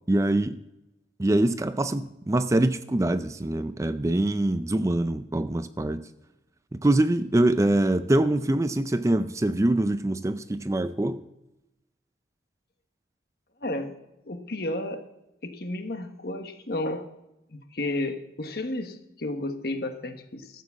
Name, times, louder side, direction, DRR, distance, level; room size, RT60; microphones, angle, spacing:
voice 1, 0.1-0.6 1.2-6.1 6.7-11.2, right 1 dB, 15° right, 0.4 m, -24 dB
voice 2, 13.6-13.9 14.3-15.0 15.4-17.1 17.5-20.6, left 1 dB, 55° left, 1.3 m, -32 dB
13.5 x 7.4 x 7.3 m
head